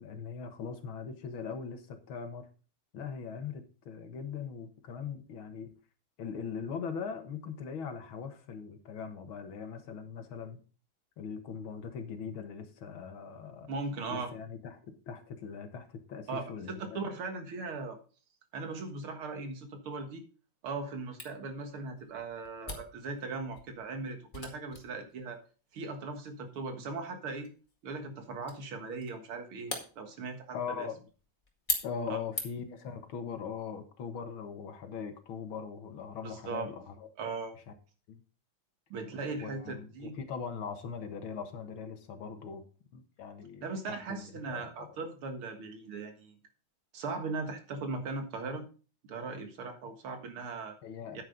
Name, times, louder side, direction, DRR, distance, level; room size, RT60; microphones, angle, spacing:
voice 1, 0.0-2.5 2.9-5.7 6.2-10.6 11.2-13.7 14.1-17.0 30.5-31.1 31.8-37.1 37.5-37.8 38.1-38.2 39.4-42.6 42.9-44.9 50.8-51.2, left 6 dB, 75° left, 7 dB, 2.2 m, -41 dB
voice 2, 13.7-14.3 16.3-16.4 16.7-18.0 18.5-20.2 20.6-25.4 25.7-27.5 27.8-30.9 32.1-32.2 36.2-36.7 37.2-37.5 38.9-40.2 43.6-46.4 46.9-48.7 49.1-50.8 51.1-51.2, right 3 dB, 90° right, 6 dB, 2.5 m, -39 dB
Camera, 21.2-32.8, left 2 dB, 25° left, 2.1 m, -43 dB
9.5 x 9.3 x 3.9 m, 0.36 s
omnidirectional pair, 2.3 m